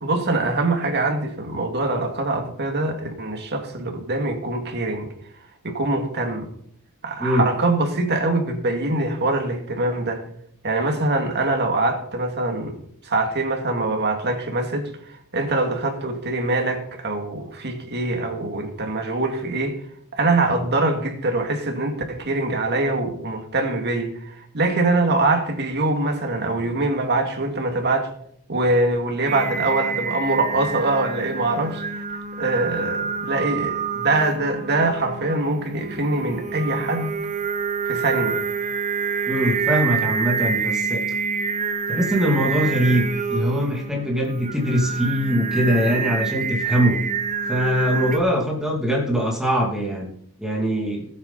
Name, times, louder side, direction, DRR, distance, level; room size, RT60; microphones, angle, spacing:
voice 1, 0.0-5.1 5.6-6.5 7.0-10.2 10.6-12.8 13.0-19.8 20.1-28.1 28.5-37.1 37.8-38.4, right 2 dB, 50° right, 2.3 m, -23 dB
Singing, 29.3-48.2, right 6 dB, 35° right, 0.8 m, -27 dB
voice 2, 39.3-41.0 41.9-47.0 47.5-50.1 50.4-51.1, equal, 5° right, 2.5 m, -22 dB
20.0 x 8.4 x 4.1 m
head